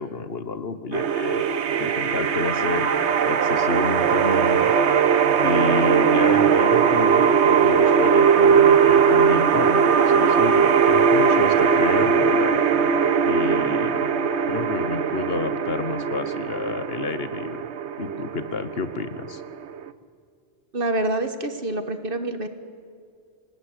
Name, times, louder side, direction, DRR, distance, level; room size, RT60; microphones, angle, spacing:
voice 1, 0.0-1.5 1.8-2.9 3.3-4.7 5.4-12.6 13.3-14.0 14.5-17.6 18.0-19.4, left 4 dB, 60° left, 12 dB, 1.4 m, -29 dB
sound 1, 0.9-19.9, right 6 dB, 75° right, 1.2 m, -20 dB
voice 2, 20.7-22.5, right 2 dB, 50° right, 9 dB, 1.7 m, -26 dB
25.5 x 20.0 x 9.9 m, 2.3 s
omnidirectional pair, 1.1 m